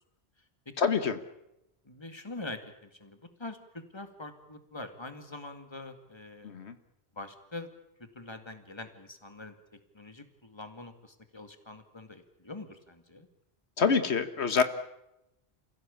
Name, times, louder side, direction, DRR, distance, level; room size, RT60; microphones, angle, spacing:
voice 1, 0.8-1.2 6.4-6.7 13.8-14.6, left 5 dB, 85° left, 11 dB, 1.6 m, -26 dB
voice 2, 1.8-6.6 7.2-7.7 8.0-9.5 9.9-13.3, left 2 dB, 25° left, 8 dB, 2.3 m, -44 dB
29.0 x 16.0 x 8.6 m, 0.88 s
omnidirectional pair, 1.1 m